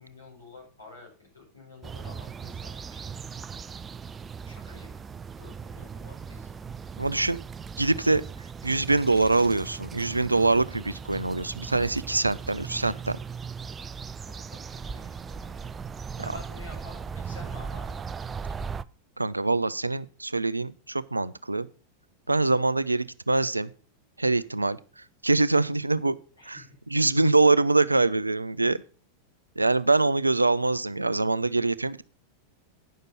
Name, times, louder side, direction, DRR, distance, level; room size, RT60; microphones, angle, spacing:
voice 1, 0.0-3.0 4.4-5.0 5.4-6.6 14.3-15.7 16.2-18.0 26.4-26.7 29.8-29.9, left 3 dB, 80° left, -2 dB, 5.6 m, -50 dB
sound 1, 1.8-18.8, right 6 dB, 20° right, 0.4 m, -38 dB
voice 2, 7.0-7.4 7.8-8.2 8.6-13.2 19.2-21.7 22.3-23.7 24.2-24.8 25.2-26.2 26.5-26.6 26.9-28.8 29.6-32.0, right 3 dB, 80° right, 17 dB, 0.4 m, -24 dB
10.0 x 6.6 x 5.5 m, 0.38 s
figure-of-eight pair, 90°, 0 cm